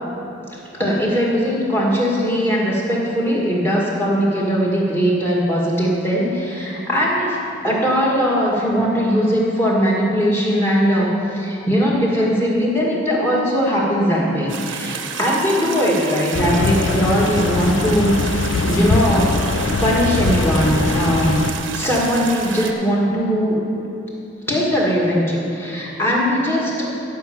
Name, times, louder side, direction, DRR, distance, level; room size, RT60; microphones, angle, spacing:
voice 1, 0.7-18.2 18.7-19.3 19.8-21.5 21.7-23.6 24.5-26.8, equal, 10° left, -4 dB, 2.0 m, -19 dB
sound 1, 14.5-22.7, right 6 dB, 80° right, 0.9 m, -31 dB
sound 2, 16.3-21.5, left 4 dB, 85° left, 0.5 m, -22 dB
15.0 x 5.6 x 7.2 m, 2.9 s
head